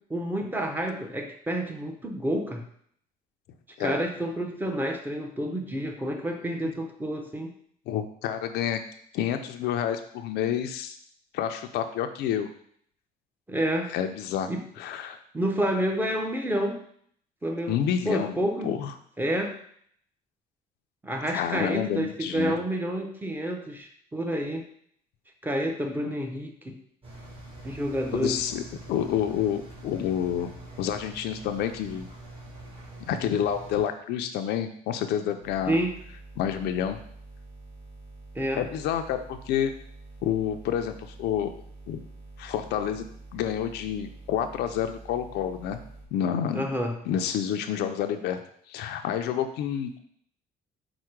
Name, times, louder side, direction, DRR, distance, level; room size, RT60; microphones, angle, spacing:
voice 1, 0.1-2.6 3.8-7.5 13.5-13.9 14.5-14.6 15.3-16.8 17.4-17.7 18.0-18.7 19.2-19.6 21.0-24.7 25.4-26.8 27.6-28.4 35.7-36.0 38.3-38.6 46.5-46.9, right 1 dB, 10° right, 2 dB, 0.6 m, -29 dB
voice 2, 7.9-8.8 9.1-10.9 11.3-12.5 13.9-14.5 14.8-15.2 17.7-18.9 21.3-22.6 28.1-28.6 28.9-32.1 33.1-35.8 36.4-37.0 38.6-39.7 40.2-41.5 41.9-42.0 42.4-43.1 43.3-45.8 46.1-46.7 47.0-48.4 48.7-50.0, left 9 dB, 80° left, 7 dB, 0.5 m, -29 dB
Engine, 27.0-33.8, right 1 dB, 35° right, 1.3 m, -44 dB
sound 1, 35.4-46.1, right 2 dB, 75° right, 1.5 m, -47 dB
4.7 x 2.1 x 4.5 m, 0.63 s
cardioid pair, 110°, 17 cm